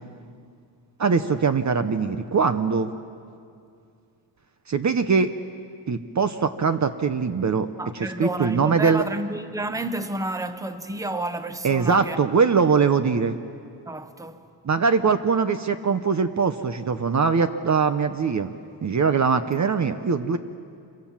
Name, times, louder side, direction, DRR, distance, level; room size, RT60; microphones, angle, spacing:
voice 1, 1.0-2.9 4.7-5.3 5.9-7.7 7.9-9.0 11.6-13.4 14.6-18.5 18.8-20.4, right 5 dB, 40° right, 0.9 m, -22 dB
voice 2, 7.8-12.2 13.9-14.4, right 1 dB, 10° right, 1.0 m, -30 dB
27.5 x 24.5 x 7.4 m
wide cardioid pair, 125°, 44 cm